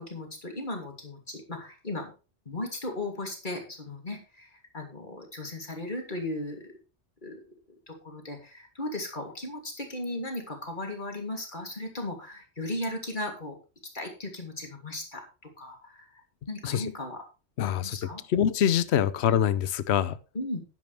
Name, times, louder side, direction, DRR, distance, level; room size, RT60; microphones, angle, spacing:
voice 1, 0.0-2.1 2.4-6.7 7.2-7.4 7.9-13.6 13.9-15.2 15.6-17.2 17.7-18.2 20.3-20.6, left 1 dB, 40° left, 2 dB, 3.1 m, -36 dB
voice 2, 17.6-20.2, left 9 dB, 65° left, 15 dB, 1.0 m, -25 dB
10.5 x 10.5 x 3.4 m, 0.33 s
omnidirectional pair, 1.3 m